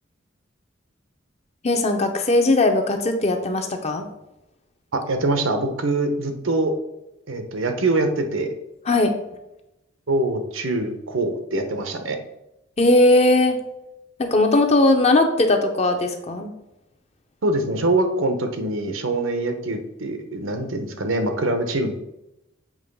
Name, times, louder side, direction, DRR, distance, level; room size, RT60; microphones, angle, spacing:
voice 1, 1.6-4.1 8.9-9.1 12.8-13.6 14.2-16.5, left 2 dB, 35° left, 5 dB, 0.7 m, -18 dB
voice 2, 4.9-6.7 7.3-8.5 10.1-12.2 17.4-21.9, right 2 dB, 85° right, 6 dB, 0.9 m, -24 dB
7.4 x 3.1 x 5.3 m, 0.90 s
head